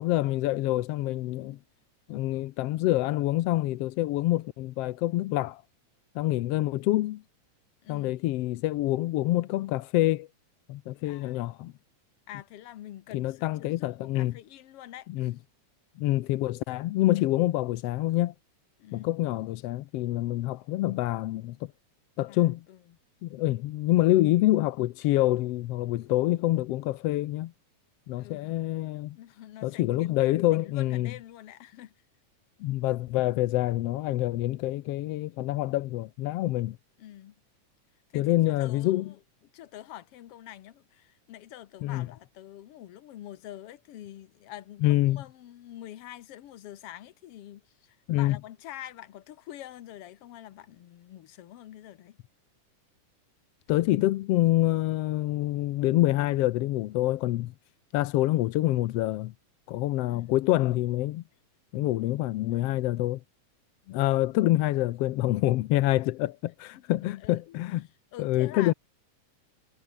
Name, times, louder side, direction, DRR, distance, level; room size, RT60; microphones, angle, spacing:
voice 1, 0.0-1.6 2.1-5.6 6.1-7.2 7.9-10.3 10.7-11.7 13.1-14.3 15.1-15.3 16.0-18.3 18.9-21.6 22.2-22.6 23.2-27.5 28.1-29.2 29.6-31.1 32.6-36.8 38.1-39.1 41.8-42.1 44.8-45.2 48.1-48.4 53.7-57.5 57.9-59.3 59.7-61.2 61.7-63.2 63.9-67.8 68.2-68.7, left 16 dB, 80° left, 1.4 m, -26 dB
voice 2, 7.8-8.2 11.0-11.4 12.3-15.4 18.8-19.1 22.3-23.0 28.1-28.6 29.2-31.9 37.0-37.4 38.1-39.2 39.5-52.2 60.1-60.3 62.5-62.8 66.2-66.3 66.8-67.6 68.1-68.7, left 13 dB, 60° left, 1.7 m, -46 dB
omnidirectional pair, 3.6 m